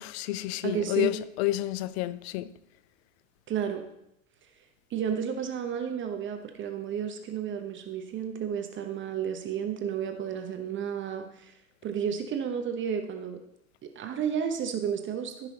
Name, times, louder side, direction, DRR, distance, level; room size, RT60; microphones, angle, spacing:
voice 1, 0.0-2.5, left 16 dB, 45° left, 0.6 m, -30 dB
voice 2, 0.6-1.1 3.5-3.9 4.9-13.4 13.8-15.5, right 8 dB, 25° right, 1.0 m, -32 dB
14.5 x 5.8 x 4.1 m
figure-of-eight pair, 95°, 44 cm